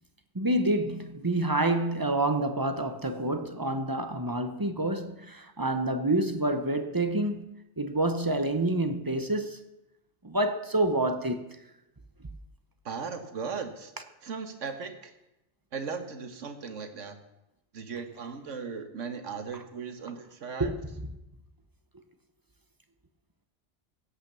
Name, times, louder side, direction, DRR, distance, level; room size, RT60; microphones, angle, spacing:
voice 1, 0.3-9.6 10.2-11.4 12.2-12.3 20.6-21.1, right 1 dB, 20° right, 0.7 m, -28 dB
voice 2, 12.8-13.9 14.2-15.1 15.7-17.1 17.7-20.7, right 5 dB, 80° right, 1.6 m, -37 dB
16.5 x 5.8 x 6.8 m
omnidirectional pair, 1.3 m